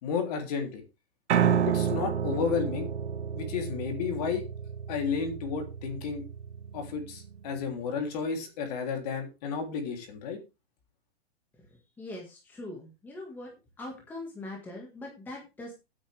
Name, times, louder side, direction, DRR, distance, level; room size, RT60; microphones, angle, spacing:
voice 1, 0.0-0.8 1.7-2.9 3.3-4.4 4.9-6.2 6.7-10.4, left 6 dB, 35° left, 4 dB, 3.3 m, -32 dB
Piano, 1.3-7.5, right 8 dB, 80° right, 1.5 m, -30 dB
voice 2, 12.0-13.5 13.8-15.7, left 2 dB, 5° left, 0 dB, 1.8 m, -41 dB
15.5 x 8.7 x 3.5 m, 0.28 s
hypercardioid pair, 175°, 33 cm